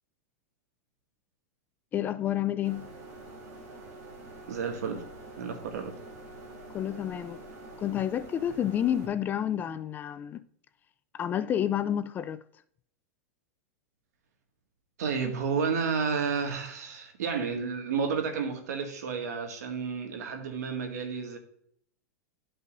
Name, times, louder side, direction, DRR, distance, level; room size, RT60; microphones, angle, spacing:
voice 1, 1.9-2.9 6.7-7.4 7.8-10.4 11.1-12.4, left 10 dB, 20° left, 0.3 m, -29 dB
sound 1, 2.6-9.1, right 2 dB, 45° right, 2.7 m, -46 dB
voice 2, 4.5-5.0 5.4-5.9 15.0-21.4, right 5 dB, 80° right, 1.9 m, -31 dB
12.0 x 5.5 x 2.5 m
supercardioid pair, 140°, 9 cm